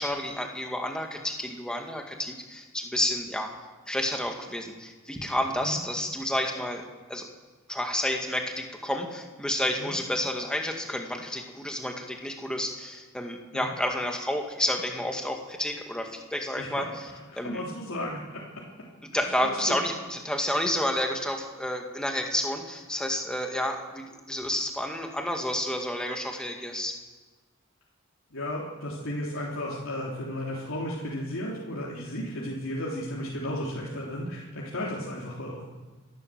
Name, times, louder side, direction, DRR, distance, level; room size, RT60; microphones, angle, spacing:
voice 1, 0.0-3.5 3.9-7.3 7.7-17.0 17.3-17.6 19.1-27.0, left 1 dB, 5° left, 2 dB, 2.1 m, -30 dB
voice 2, 16.6-16.9 17.3-18.4 19.1-19.2 19.7-19.8 28.3-35.6, left 1 dB, 85° left, -6 dB, 3.4 m, -34 dB
27.0 x 12.5 x 7.7 m, 1.3 s
head